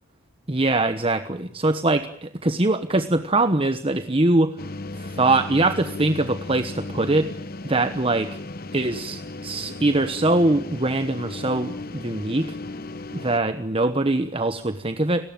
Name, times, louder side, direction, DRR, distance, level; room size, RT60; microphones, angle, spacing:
voice 1, 0.5-4.5 4.9-7.3 7.6-8.4 8.7-12.6 13.1-15.3, right 2 dB, 25° right, 10 dB, 1.1 m, -22 dB
sound 1, 4.6-13.4, left 2 dB, 45° left, 1.1 m, -36 dB
30.0 x 19.0 x 9.0 m, 0.66 s
head